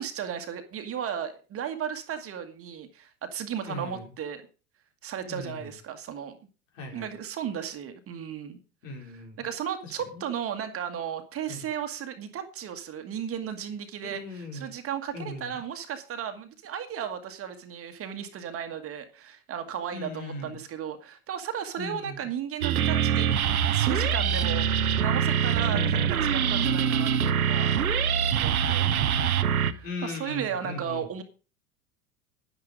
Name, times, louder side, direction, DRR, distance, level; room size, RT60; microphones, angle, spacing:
voice 1, 0.0-4.4 5.0-6.3 6.9-8.6 9.1-24.7 25.0-28.8 29.7-31.2, right 8 dB, 30° right, 7 dB, 1.6 m, -35 dB
voice 2, 3.7-4.1 5.2-5.7 6.7-7.1 8.8-9.4 9.8-10.3 11.5-11.6 14.0-14.7 15.1-15.6 19.9-20.6 21.8-22.3 25.7-26.2 28.8-29.6 29.8-31.1, left 2 dB, 60° left, 2 dB, 4.3 m, -38 dB
sound 1, 22.6-29.7, right 8 dB, 75° right, 1.0 m, -24 dB
10.5 x 9.7 x 5.1 m, 0.35 s
figure-of-eight pair, 85°, 43 cm